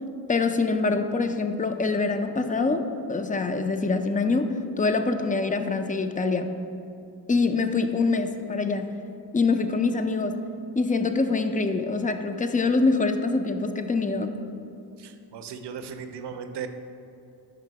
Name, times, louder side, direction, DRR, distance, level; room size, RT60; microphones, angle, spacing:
voice 1, 0.3-2.8 3.1-6.5 7.3-8.9 9.3-10.4 10.7-14.3, left 3 dB, 20° left, 7 dB, 0.3 m, -24 dB
voice 2, 15.0-16.7, right 7 dB, 85° right, 8 dB, 0.5 m, -37 dB
5.2 x 4.9 x 4.6 m, 2.6 s
wide cardioid pair, 85°, 40 cm